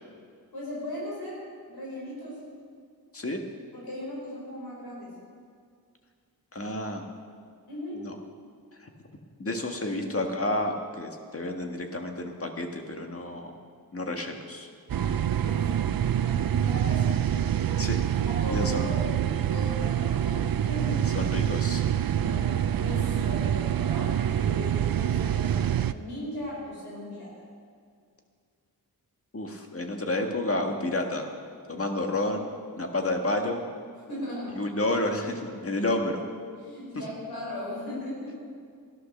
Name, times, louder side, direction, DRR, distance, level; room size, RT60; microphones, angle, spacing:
voice 1, 0.5-1.4 1.7-2.4 3.7-5.1 7.7-8.0 9.9-10.1 15.0-15.9 16.2-17.7 18.3-19.1 19.5-20.4 20.7-21.2 22.0-27.3 34.1-34.6 36.6-38.3, left 1 dB, 80° left, -5 dB, 5.3 m, -37 dB
voice 2, 6.5-7.1 7.9-8.2 8.8-8.9 9.4-13.5 13.9-14.7 17.8-18.0 18.5-18.9 21.1-21.8 29.3-31.3 31.7-32.5 32.8-33.6 34.6-36.3, left 1 dB, 35° left, 3 dB, 1.8 m, -30 dB
sound 1, 14.9-25.9, right 10 dB, 65° right, 0.6 m, -26 dB
17.0 x 11.0 x 6.6 m, 2.1 s
wide cardioid pair, 85°, 37 cm